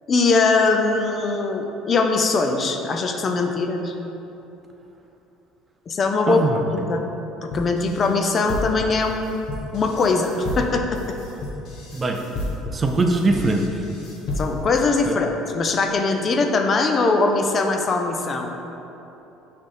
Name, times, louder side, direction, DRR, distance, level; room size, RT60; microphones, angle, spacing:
voice 1, 0.1-3.9 5.9-6.6 6.9-7.0 7.4-9.4 9.7-11.1 14.4-18.5, left 3 dB, 30° left, 4 dB, 0.5 m, -21 dB
voice 2, 6.3-6.6 11.9-12.2 12.7-13.7 15.1-15.2, right 3 dB, 20° right, 3 dB, 0.5 m, -21 dB
sound 1, 7.5-14.8, left 2 dB, 60° left, 1.1 m, -31 dB
6.4 x 3.4 x 5.6 m, 3.0 s
cardioid pair, 130°, 0 cm